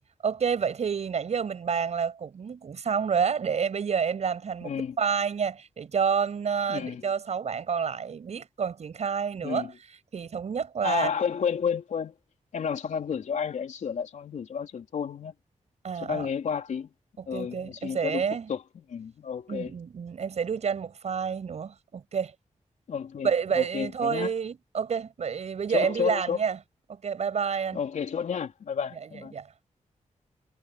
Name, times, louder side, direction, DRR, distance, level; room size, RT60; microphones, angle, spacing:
voice 1, 0.2-4.7 5.0-9.7 10.1-11.1 15.8-16.3 17.2-18.5 19.5-22.3 23.2-26.6 26.9-27.8 29.0-29.5, right 6 dB, 60° right, 7.6 m, -29 dB
voice 2, 4.6-5.0 6.7-7.1 9.4-9.7 10.8-12.1 12.5-15.3 16.0-16.9 17.3-19.7 22.9-24.3 25.7-26.4 27.7-29.3, left 7 dB, 70° left, 3.9 m, -31 dB
wide cardioid pair, 175°, 13 cm